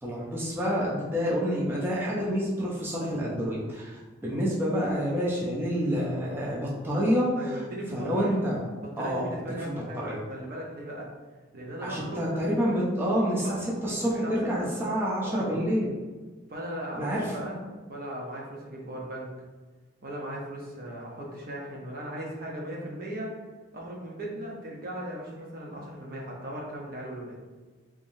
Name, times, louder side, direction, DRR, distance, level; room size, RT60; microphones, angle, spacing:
voice 1, 0.0-7.6 7.9-8.6 9.0-9.3 9.6-10.2 11.8-15.9 16.9-17.3, equal, 10° right, -6 dB, 0.6 m, -28 dB
voice 2, 7.4-8.4 8.8-11.1 11.5-12.3 13.4-13.5 13.8-15.7 16.5-17.6 17.9-19.3 20.0-23.3 23.7-27.4, right 1 dB, 50° right, -2 dB, 0.8 m, -38 dB
3.5 x 3.3 x 2.7 m, 1.3 s
head